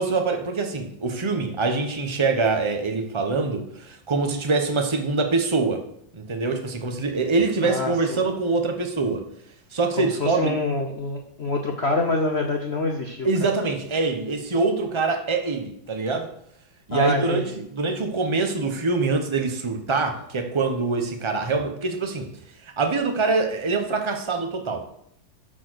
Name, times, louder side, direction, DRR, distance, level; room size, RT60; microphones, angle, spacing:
voice 1, 0.0-5.8 6.1-9.2 9.7-10.5 13.2-16.3 16.9-22.3 22.6-24.8, right 3 dB, 40° right, 5 dB, 0.4 m, -24 dB
voice 2, 7.6-8.2 10.0-13.3 16.9-17.5, left 2 dB, 55° left, 2 dB, 0.7 m, -26 dB
12.0 x 4.6 x 6.3 m, 0.74 s
omnidirectional pair, 2.2 m